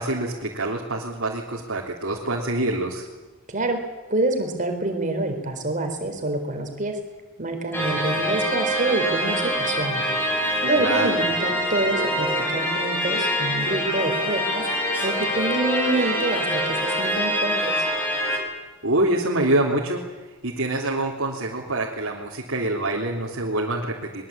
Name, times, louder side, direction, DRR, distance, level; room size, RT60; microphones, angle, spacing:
voice 1, 0.0-3.0 10.8-11.1 18.8-20.0 20.4-24.3, right 2 dB, 65° right, -2 dB, 3.4 m, -25 dB
voice 2, 3.5-3.8 4.1-7.0 7.4-10.0 10.6-14.6 15.0-17.9, right 2 dB, 40° right, 5 dB, 4.2 m, -27 dB
sound 1, 7.7-18.4, equal, 10° left, 5.4 m, -25 dB
23.0 x 22.0 x 8.8 m, 1.2 s
head